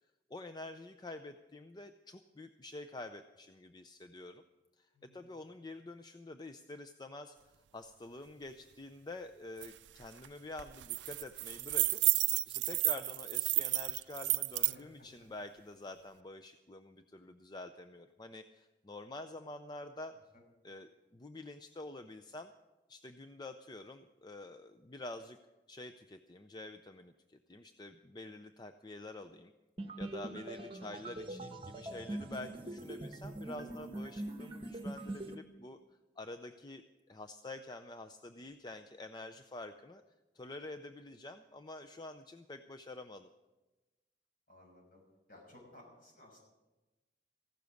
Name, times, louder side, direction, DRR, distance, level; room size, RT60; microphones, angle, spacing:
voice 1, 0.3-4.4 4.8-20.1 20.6-22.5 22.9-25.4 25.7-29.5 30.0-35.8 36.2-40.0 40.3-43.3, left 2 dB, 25° left, 8 dB, 0.5 m, -48 dB
voice 2, 4.9-5.3 14.5-15.1 33.5-33.8 44.5-45.0 45.3-46.4, left 1 dB, 50° left, 0 dB, 6.1 m, -57 dB
sound 1, 9.6-9.7 10.0-10.3 10.6-14.7, right 19 dB, 85° right, 0.4 m, -32 dB
sound 2, 29.8-35.3, right 1 dB, 30° right, 1.2 m, -43 dB
15.5 x 12.0 x 6.4 m, 1.1 s
head